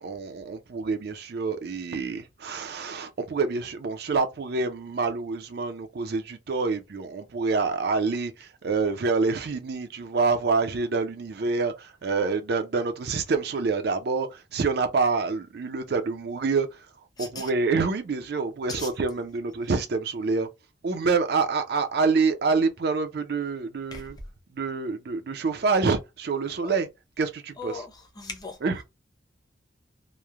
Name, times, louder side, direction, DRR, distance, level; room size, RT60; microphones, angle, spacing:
voice 1, 0.0-16.7 17.2-20.5 20.8-24.2 24.5-26.9 27.2-27.8 28.6-28.8, right 4 dB, 55° right, 0.4 m, -27 dB
voice 2, 17.2-17.5 18.7-18.9 23.9-24.0 26.6-26.7 27.6-27.9 28.2-28.6, left 4 dB, 20° left, 0.7 m, -37 dB
3.0 x 2.0 x 2.3 m
head